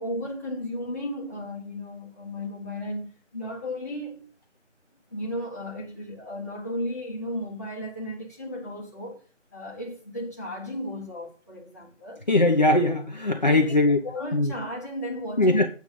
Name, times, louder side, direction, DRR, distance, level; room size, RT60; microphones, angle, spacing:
voice 1, 0.0-4.3 5.1-9.2 9.5-12.2 13.4-13.8 14.0-15.7, left 1 dB, 15° left, 1.4 m, -34 dB
voice 2, 12.3-14.0 14.3-14.5 15.4-15.7, left 2 dB, 35° left, 1.1 m, -20 dB
8.8 x 8.0 x 5.1 m
figure-of-eight pair, 170°, 38 cm